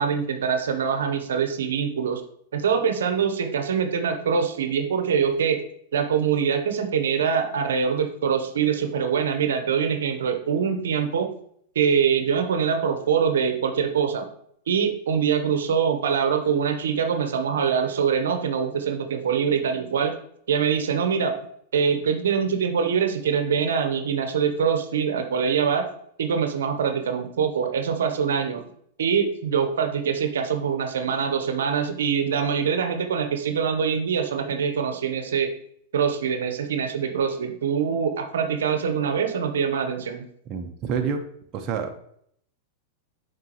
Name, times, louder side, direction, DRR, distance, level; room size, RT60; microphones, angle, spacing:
voice 1, 0.0-2.2 2.5-5.6 5.9-11.3 11.7-14.3 14.7-20.2 20.5-21.4 21.7-25.9 26.2-28.6 29.0-35.5 35.9-40.2, right 7 dB, 75° right, 6 dB, 0.9 m, -24 dB
voice 2, 40.5-41.3 41.5-42.0, right 6 dB, 40° right, 4 dB, 0.9 m, -28 dB
7.5 x 5.2 x 3.0 m, 0.67 s
hypercardioid pair, 105°, 0 cm